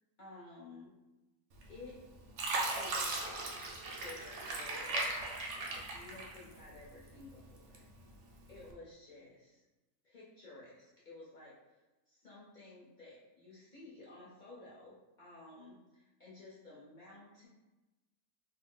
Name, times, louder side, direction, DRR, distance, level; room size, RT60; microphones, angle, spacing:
voice 1, 0.2-0.9 1.7-2.0 2.7-3.5 4.0-5.0 5.5-7.9 8.5-9.6 10.0-11.5 12.1-17.5, left 2 dB, 45° left, -9 dB, 0.7 m, -53 dB
Fill (with liquid), 1.6-2.0 2.4-6.8 7.2-8.0 8.5-8.7, right 2 dB, 65° right, 0.7 m, -37 dB
2.5 x 2.1 x 3.7 m, 1.1 s
omnidirectional pair, 1.6 m